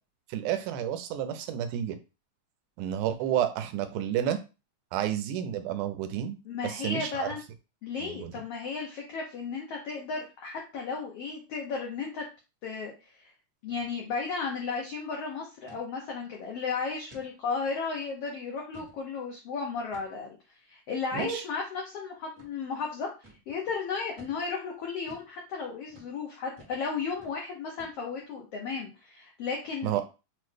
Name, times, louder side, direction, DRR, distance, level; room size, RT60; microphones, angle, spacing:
voice 1, 0.3-2.0 2.8-4.4 4.9-6.4 6.6-7.3 8.0-8.3 21.1-21.4 29.8-30.0, right 10 dB, 80° right, 9 dB, 2.0 m, -30 dB
voice 2, 6.4-7.4 7.8-12.2 12.6-13.3 13.6-20.3 20.7-30.0, left 5 dB, 80° left, 0 dB, 1.3 m, -34 dB
sound 1, 13.7-13.9 14.2-14.3 14.7-15.0 15.7-15.9 16.3-16.5 17.1-17.3 17.8-17.9 18.4-19.0 19.9-20.3 21.2-21.4 22.4-22.5 23.2-23.4 24.2-24.4 25.1-25.3 25.9-26.1 26.6-26.8 27.1-27.4 27.8-28.2, right 1 dB, 55° right, 0.8 m, -53 dB
6.1 x 2.1 x 3.2 m, 0.29 s
omnidirectional pair, 3.7 m